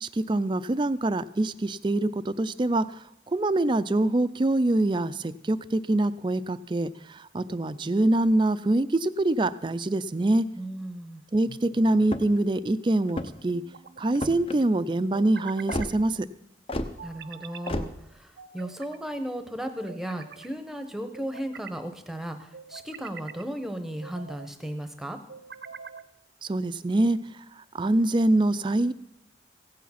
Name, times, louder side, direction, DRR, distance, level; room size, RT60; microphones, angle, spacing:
voice 1, 0.0-10.5 11.3-13.6 14.0-16.3 26.4-27.2 27.6-28.9, right 2 dB, 25° right, 14 dB, 0.4 m, -25 dB
voice 2, 10.6-11.2 17.0-25.2, right 1 dB, ahead, 8 dB, 0.9 m, -35 dB
sound 1, 11.5-12.1 13.5-14.3 15.1-15.9 17.0-17.7 18.4-19.0 19.6-20.5 21.1-21.8 22.5-23.4 24.0-24.5 25.3-26.1, right 6 dB, 75° right, 0.6 m, -45 dB
sound 2, 12.0-12.5 13.0-13.5 14.1-14.6 15.7-15.9 16.7-16.9 17.7-17.9, left 1 dB, 30° left, 0.7 m, -31 dB
15.5 x 8.5 x 5.8 m, 0.81 s
head